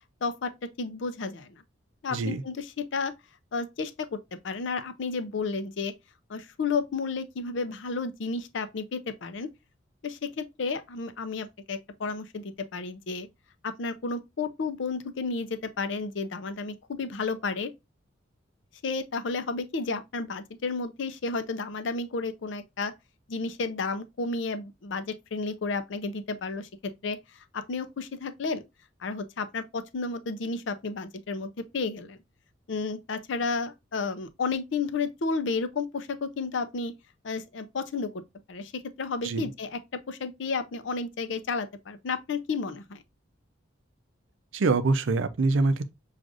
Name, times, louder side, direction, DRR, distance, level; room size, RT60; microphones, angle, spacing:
voice 1, 0.2-0.5 0.8-1.6 2.0-3.1 3.5-4.2 4.4-5.9 6.3-9.5 10.0-13.3 13.6-17.7 18.8-22.9 23.3-27.2 27.5-28.6 29.0-32.2 32.7-36.9 37.2-38.2 38.5-43.0, left 4 dB, 65° left, 0.5 m, -32 dB
voice 2, 2.1-2.4 39.2-39.5 44.5-45.9, right 3 dB, 75° right, 0.5 m, -25 dB
6.1 x 2.4 x 2.5 m
head